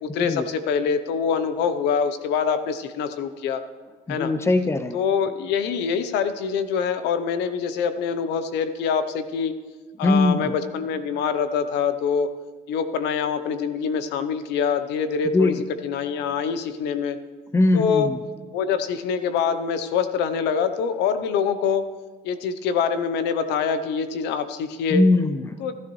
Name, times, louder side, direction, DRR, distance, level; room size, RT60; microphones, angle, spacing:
voice 1, 0.0-3.6 4.1-4.3 4.9-9.6 10.0-12.3 12.7-15.5 15.8-17.2 17.7-18.1 18.5-21.9 22.2-25.0 25.6-25.7, left 6 dB, 90° left, 11 dB, 0.8 m, -25 dB
voice 2, 4.1-4.9 10.0-10.4 15.3-15.6 17.5-18.2 24.9-25.6, left 2 dB, 15° left, 10 dB, 0.6 m, -20 dB
15.0 x 13.5 x 3.2 m, 1.3 s
cardioid pair, 110°, 17 cm